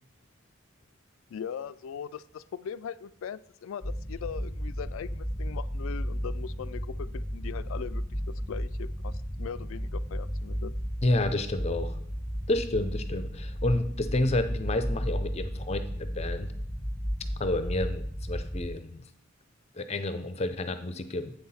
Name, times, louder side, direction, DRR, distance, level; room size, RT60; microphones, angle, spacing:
voice 1, 1.3-8.0 8.5-10.7, left 7 dB, 75° left, 17 dB, 0.3 m, -40 dB
sound 1, 3.8-18.7, equal, 5° left, 1.3 m, -34 dB
voice 2, 11.0-12.0 12.5-16.5 17.4-19.0 19.8-21.3, left 2 dB, 30° left, 10 dB, 0.6 m, -30 dB
8.3 x 5.8 x 4.2 m, 0.69 s
head